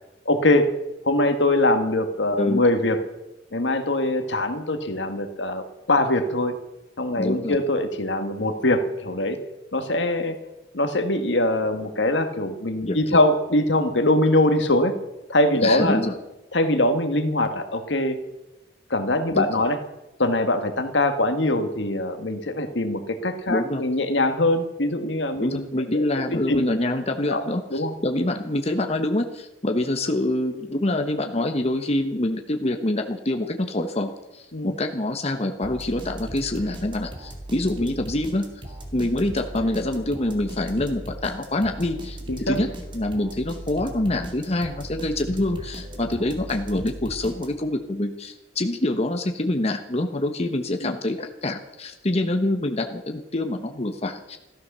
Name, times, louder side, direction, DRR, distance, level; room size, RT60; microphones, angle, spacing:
voice 1, 0.2-0.7 1.0-3.0 3.5-6.6 7.0-9.4 9.7-10.4 10.7-14.9 15.3-16.0 16.5-18.2 18.9-19.8 20.2-26.0 26.3-26.7 27.3-27.4 27.7-27.9 34.5-34.7 42.3-42.6 50.8-51.0, left 1 dB, 75° left, 8 dB, 1.7 m, -22 dB
voice 2, 7.2-7.6 12.9-13.2 15.6-16.1 19.3-19.5 23.5-23.8 25.4-38.4 38.9-42.7 42.9-54.4, left 1 dB, 35° left, 4 dB, 1.1 m, -26 dB
sound 1, 35.6-47.8, right 1 dB, 25° right, 2.5 m, -38 dB
14.5 x 13.0 x 6.8 m, 0.96 s
head